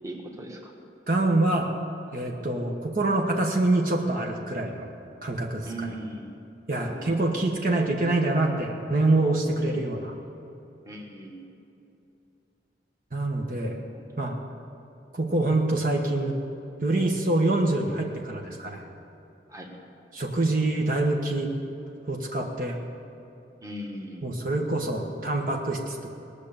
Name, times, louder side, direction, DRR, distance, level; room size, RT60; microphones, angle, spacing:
voice 1, 0.0-0.7 5.6-6.3 6.7-7.3 9.6-10.1 10.8-11.5 13.7-14.3 19.5-19.7 23.6-24.3, right 1 dB, 15° right, 0 dB, 1.5 m, -40 dB
voice 2, 1.1-1.7 2.1-4.9 5.2-5.9 6.7-10.1 13.1-13.8 14.2-14.4 15.1-16.4 16.8-18.8 20.1-21.5 22.1-22.8 24.2-26.1, right 2 dB, 50° right, 0 dB, 1.3 m, -25 dB
20.0 x 6.7 x 8.8 m, 2.8 s
head